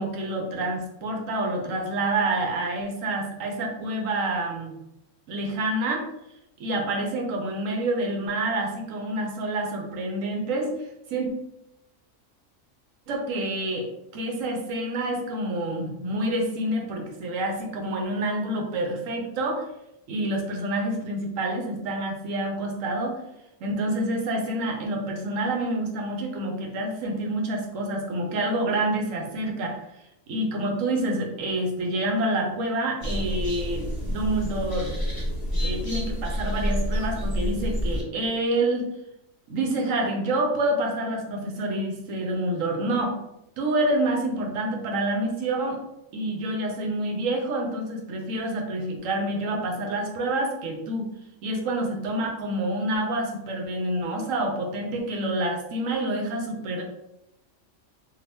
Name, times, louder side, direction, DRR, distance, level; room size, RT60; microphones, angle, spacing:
voice 1, 0.0-4.8 5.3-6.1 6.6-10.8 11.1-11.3 13.1-13.9 14.1-19.7 20.1-23.2 23.6-29.8 30.3-34.9 35.6-38.8 39.5-43.1 43.6-45.8 46.1-51.1 51.4-56.8, right 1 dB, 80° right, 2 dB, 1.1 m, -27 dB
sound 1, 33.0-38.0, equal, 20° left, 0.9 m, -28 dB
2.8 x 2.5 x 3.3 m, 0.86 s
omnidirectional pair, 1.3 m